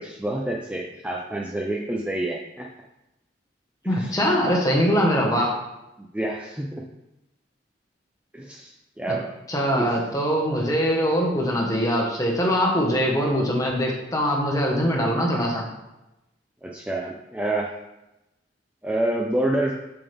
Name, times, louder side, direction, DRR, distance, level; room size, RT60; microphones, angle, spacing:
voice 1, 0.0-2.7 3.8-4.1 6.0-6.8 8.3-8.7 9.0-9.3 9.7-9.9 16.6-17.7 18.8-19.7, right 1 dB, 5° right, -1 dB, 0.5 m, -28 dB
voice 2, 3.8-5.6 9.1-9.2 9.5-15.6, equal, 20° left, -1 dB, 1.4 m, -22 dB
7.3 x 6.0 x 3.5 m, 0.95 s
head